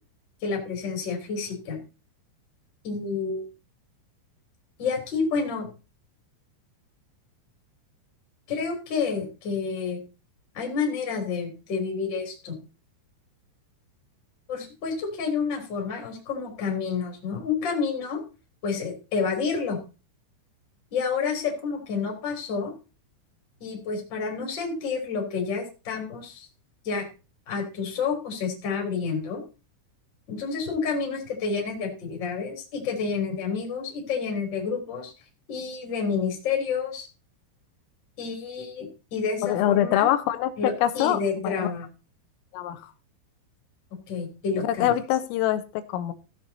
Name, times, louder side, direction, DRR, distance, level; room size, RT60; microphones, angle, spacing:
voice 1, 0.4-1.8 2.8-3.5 4.8-5.7 8.5-10.0 10.5-12.6 14.5-18.2 18.6-19.8 20.9-22.7 23.6-26.5 26.8-27.1 27.5-29.4 30.3-35.1 35.5-37.1 38.2-40.1 40.6-41.9 44.1-44.9, left 5 dB, 25° left, 1 dB, 3.1 m, -29 dB
voice 2, 39.4-40.5 40.8-41.7 42.5-42.9 44.8-46.1, left 12 dB, 85° left, 11 dB, 3.5 m, -24 dB
15.0 x 7.8 x 4.1 m, 0.32 s
omnidirectional pair, 6.0 m